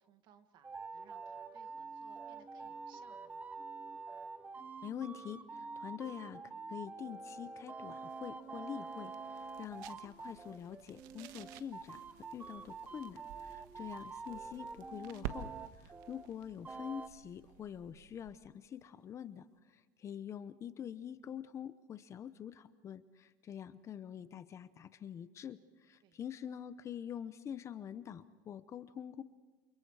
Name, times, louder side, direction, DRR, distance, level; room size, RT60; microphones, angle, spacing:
voice 1, 0.0-3.4 26.0-26.2, right 8 dB, 45° right, 8 dB, 1.9 m, -65 dB
sound 1, 0.6-16.3 16.6-17.1, right 4 dB, 15° right, 0.7 m, -47 dB
voice 2, 4.8-6.4 6.7-29.2, left 9 dB, 25° left, 13 dB, 0.7 m, -46 dB
sound 2, 7.9-18.5, right 9 dB, 75° right, 1.5 m, -52 dB
29.0 x 28.5 x 4.8 m, 1.3 s
cardioid pair, 155°, 11 cm